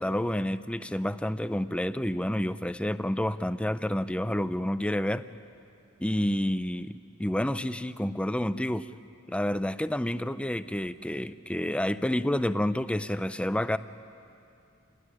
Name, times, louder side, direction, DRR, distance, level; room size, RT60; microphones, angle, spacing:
voice 1, 0.0-5.2 6.0-8.9 9.3-13.8, left 1 dB, 5° left, 12 dB, 0.5 m, -29 dB
28.0 x 19.5 x 9.9 m, 2.6 s
head